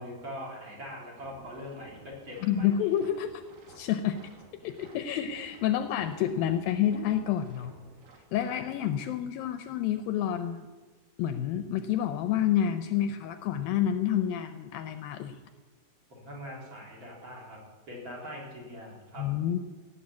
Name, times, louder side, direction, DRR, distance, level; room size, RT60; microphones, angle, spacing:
voice 1, 0.0-2.7 8.4-8.9 16.1-17.6 17.9-19.3, equal, 30° right, -2 dB, 4.1 m, -42 dB
sound 1, 1.2-8.2, right 2 dB, 75° right, 3.9 m, -55 dB
voice 2, 2.4-3.4 3.8-4.2 4.6-7.7 8.3-10.7 11.2-15.4 19.2-19.6, left 10 dB, 80° left, 9 dB, 2.2 m, -29 dB
16.5 x 7.4 x 8.2 m, 1.3 s
omnidirectional pair, 4.4 m